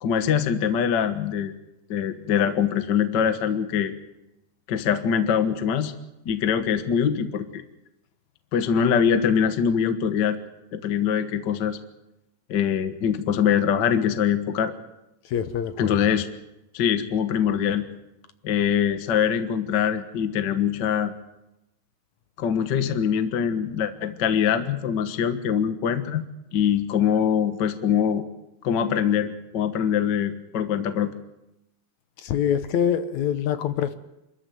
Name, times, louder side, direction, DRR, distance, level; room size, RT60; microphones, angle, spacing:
voice 1, 0.0-1.5 1.9-3.9 4.7-5.9 6.2-7.6 8.5-10.4 10.7-11.8 12.5-14.7 15.8-16.3 16.7-17.9 18.4-21.1 22.4-26.2 26.5-28.2 28.6-31.1, left 8 dB, 50° left, 9 dB, 1.4 m, -23 dB
voice 2, 15.3-15.9 32.2-34.0, left 9 dB, 70° left, 11 dB, 2.1 m, -25 dB
27.0 x 13.5 x 9.3 m, 0.94 s
omnidirectional pair, 3.6 m